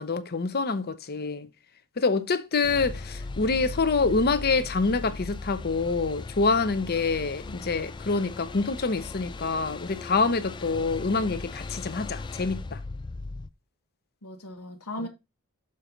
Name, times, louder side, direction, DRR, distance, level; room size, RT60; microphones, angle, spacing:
voice 1, 0.0-1.5 2.0-12.8, left 4 dB, 45° left, 0.7 m, -26 dB
voice 2, 2.6-3.0 7.5-7.7 14.2-15.1, left 1 dB, 90° left, 1.4 m, -39 dB
sound 1, 2.6-13.5, left 3 dB, 20° left, 0.3 m, -38 dB
6.7 x 4.4 x 5.1 m
head